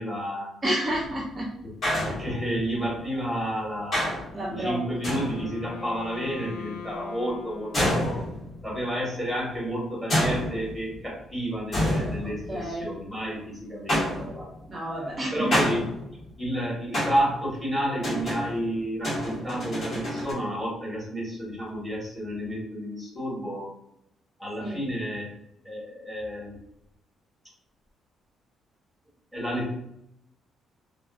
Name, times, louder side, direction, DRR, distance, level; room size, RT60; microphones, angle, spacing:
voice 1, 0.0-0.5 2.0-4.1 4.5-8.2 8.6-14.5 15.3-15.8 16.4-23.7 24.4-25.3 25.6-26.5 29.3-29.7, equal, 5° left, -5 dB, 1.2 m, -31 dB
voice 2, 0.6-1.5 4.3-4.8 12.2-12.9 14.6-15.6 24.6-24.8, right 1 dB, 25° right, -3 dB, 0.5 m, -30 dB
sound 1, 0.9-1.3 1.8-2.8 3.9-4.4 5.0-5.7 7.7-8.8 10.1-11.1 11.7-12.9 13.9-14.6 15.5-16.4 16.9-17.5 18.0-20.3, equal, 40° left, 1.5 m, -28 dB
Wind instrument woodwind instrument, 4.3-8.6, left 5 dB, 70° left, 0.5 m, -42 dB
3.3 x 2.0 x 2.3 m, 0.76 s
cardioid pair, 140°, 0 cm